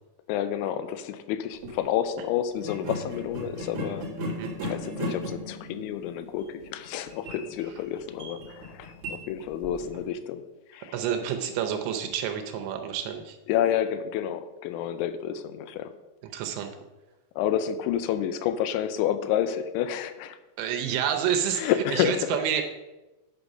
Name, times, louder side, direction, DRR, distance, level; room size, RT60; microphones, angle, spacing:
voice 1, 0.3-4.1 4.6-10.4 10.7-10.9 13.5-15.9 17.4-20.4 21.5-22.4, left 10 dB, 85° left, 11 dB, 3.0 m, -29 dB
sound 1, 1.5-1.8 2.6-10.1, equal, 60° right, 1.5 m, -37 dB
voice 2, 10.9-13.4 16.3-16.7 20.6-22.6, right 8 dB, 80° right, 5 dB, 2.9 m, -29 dB
9.8 x 6.0 x 5.3 m, 1.1 s
omnidirectional pair, 5.4 m